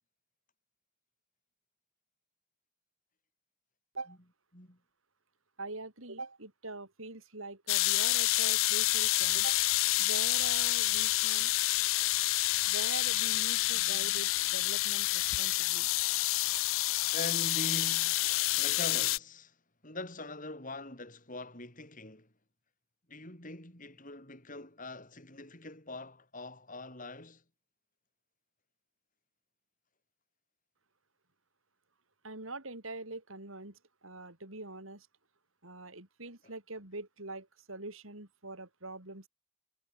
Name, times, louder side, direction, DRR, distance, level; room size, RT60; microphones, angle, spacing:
voice 1, 5.6-9.6 10.0-11.5 12.7-15.9 32.2-35.1 35.6-39.3, right 2 dB, 75° right, 5.2 m, -43 dB
sound 1, 7.7-19.2, left 18 dB, 70° left, 0.5 m, -28 dB
voice 2, 17.1-19.6 19.8-22.3 23.1-27.4 36.4-36.5, left 2 dB, 40° left, 7.1 m, -43 dB
head